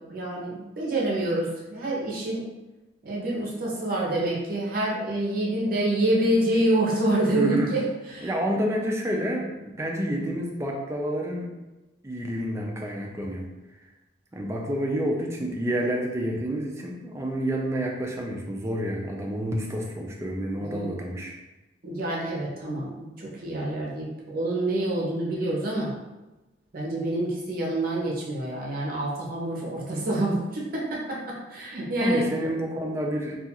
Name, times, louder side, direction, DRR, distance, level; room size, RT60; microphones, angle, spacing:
voice 1, 0.1-2.5 3.0-8.3 20.6-21.0 21.8-25.9 26.7-32.3, right 1 dB, 50° right, -4 dB, 0.6 m, -27 dB
voice 2, 7.3-7.7 8.2-11.5 12.0-13.5 14.3-21.3 32.0-33.4, right 1 dB, 15° right, 0 dB, 0.3 m, -29 dB
2.3 x 2.3 x 2.8 m, 1.1 s
head